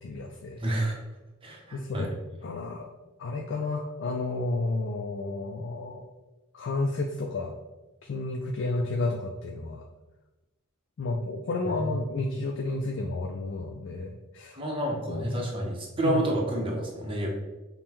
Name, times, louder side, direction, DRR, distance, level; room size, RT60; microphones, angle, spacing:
voice 1, 0.0-0.6 1.7-2.1 2.4-2.9 3.2-6.0 6.5-7.5 8.0-9.9 11.0-14.6 14.9-15.4 16.0-16.2, left 2 dB, 60° left, 2 dB, 0.3 m, -31 dB
voice 2, 0.6-1.0 1.4-2.1 11.8-11.9 14.6-17.3, right 1 dB, 25° right, -1 dB, 0.7 m, -29 dB
5.3 x 2.1 x 2.9 m, 1.1 s
head